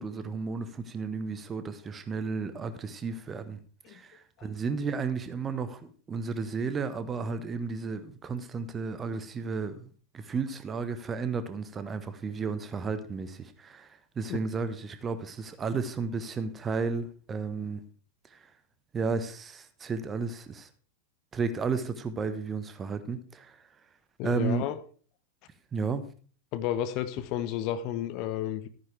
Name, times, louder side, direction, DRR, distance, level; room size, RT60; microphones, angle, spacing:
voice 1, 0.0-3.6 3.9-17.8 18.3-18.5 18.9-20.7 21.3-23.7 24.2-24.7 25.7-26.1, right 5 dB, 20° right, 1.2 m, -33 dB
voice 2, 24.2-24.8 26.5-28.7, left 11 dB, 40° left, 0.9 m, -31 dB
14.5 x 9.5 x 3.4 m
figure-of-eight pair, 90°, 0 cm